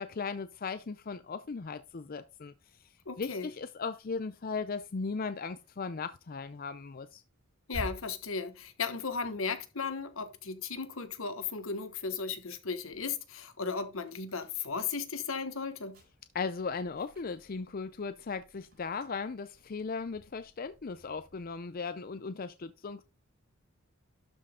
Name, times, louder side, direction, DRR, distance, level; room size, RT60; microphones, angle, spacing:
voice 1, 0.0-2.5 3.2-7.2 16.3-23.0, left 4 dB, 45° left, 0.5 m, -37 dB
voice 2, 3.1-3.5 7.7-16.0, left 5 dB, 85° left, 1.3 m, -36 dB
sound 1, 4.9-11.4 11.8-21.6, equal, 45° right, 6.4 m, -53 dB
12.0 x 5.6 x 3.8 m
head